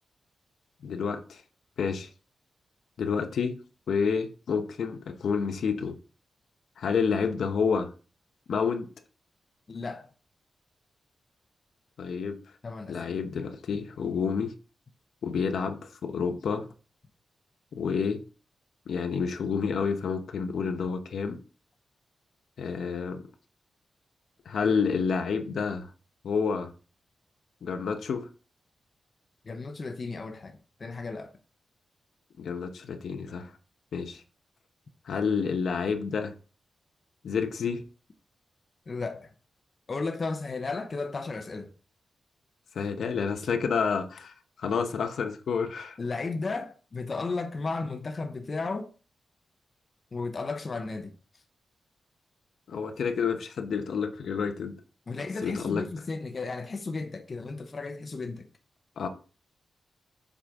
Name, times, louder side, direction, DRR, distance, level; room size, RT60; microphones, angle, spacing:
voice 1, 0.8-1.4 1.8-2.1 3.0-3.5 3.9-6.0 6.8-7.9 8.5-8.9 12.0-12.4 12.9-14.5 15.2-16.7 17.7-18.2 18.9-21.4 22.6-23.3 24.5-25.9 26.2-26.7 27.6-28.3 32.4-33.5 33.9-34.2 35.1-36.3 37.2-37.8 42.7-44.3 44.6-46.0 52.7-54.7 55.4-55.8 59.0-59.1, left 6 dB, 75° left, 0.9 m, -29 dB
voice 2, 9.7-10.1 12.6-13.2 29.4-31.3 38.9-39.3 39.9-41.7 46.0-48.9 50.1-51.1 55.1-58.5, left 3 dB, 35° left, 0.8 m, -34 dB
7.4 x 5.0 x 3.7 m
wide cardioid pair, 170°, 0 cm